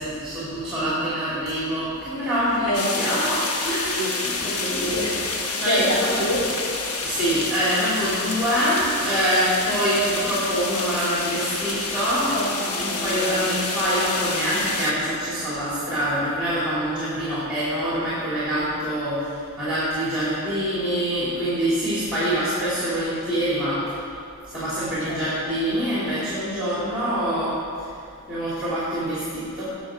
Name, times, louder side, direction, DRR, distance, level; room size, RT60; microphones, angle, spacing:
voice 1, 0.0-4.0 4.4-4.9 5.6-6.4 7.0-12.4 12.8-24.0 24.5-27.9 28.3-29.7, equal, 5° right, -10 dB, 2.9 m, -25 dB
sound 1, 2.7-14.9, left 3 dB, 70° left, 1.2 m, -28 dB
voice 2, 2.7-3.2 4.0-6.5 12.3-13.4 25.1-25.3, equal, 35° left, -5 dB, 2.6 m, -28 dB
18.0 x 6.3 x 4.9 m, 2.5 s
head